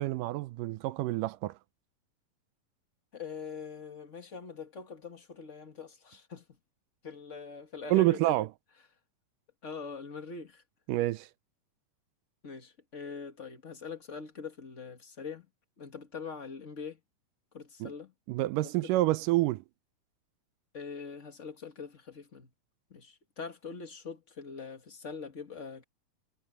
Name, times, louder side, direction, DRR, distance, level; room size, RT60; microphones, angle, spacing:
voice 1, 0.0-1.6 7.9-8.5 10.9-11.3 17.8-17.9 18.3-19.6, right 17 dB, 80° right, 2.1 m, -28 dB
voice 2, 3.1-6.4 7.0-8.4 9.6-10.6 12.4-15.5 15.8-17.0 17.5-18.1 18.6-18.9 20.7-22.5 22.9-25.8, left 5 dB, 35° left, 1.2 m, -43 dB
omnidirectional pair, 4.0 m